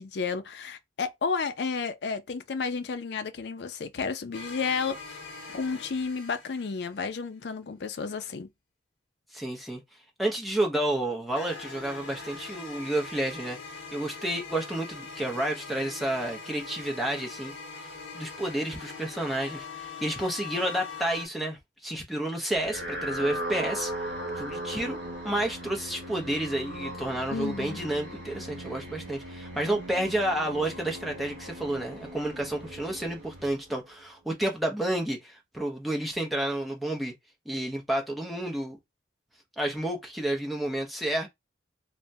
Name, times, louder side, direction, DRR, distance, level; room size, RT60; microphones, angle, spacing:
voice 1, 0.0-5.2 5.5-8.5 27.3-27.8, left 5 dB, 60° left, 0.4 m, -32 dB
sound 1, 4.3-7.1 11.3-21.3, left 4 dB, 80° left, 1.1 m, -42 dB
voice 2, 9.3-9.8 10.2-13.6 13.9-17.5 18.1-23.9 24.4-37.1 37.5-38.8 39.6-41.3, right 1 dB, ahead, 0.6 m, -30 dB
sound 2, 22.6-34.0, right 1 dB, 70° right, 0.9 m, -38 dB
3.3 x 2.1 x 2.6 m
head